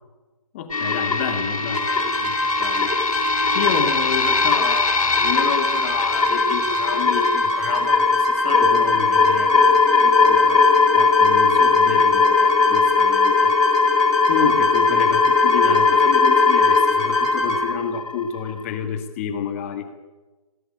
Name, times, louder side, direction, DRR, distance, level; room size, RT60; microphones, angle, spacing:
voice 1, 0.5-10.7 10.9-13.5 14.3-19.9, left 7 dB, 25° left, 7 dB, 1.7 m, -29 dB
sound 1, 0.7-18.6, left 4 dB, 75° left, 4.3 m, -19 dB
sound 2, 1.7-17.6, equal, 5° right, 4.8 m, -25 dB
18.0 x 18.0 x 9.9 m, 1.2 s
hypercardioid pair, 170°, 18 cm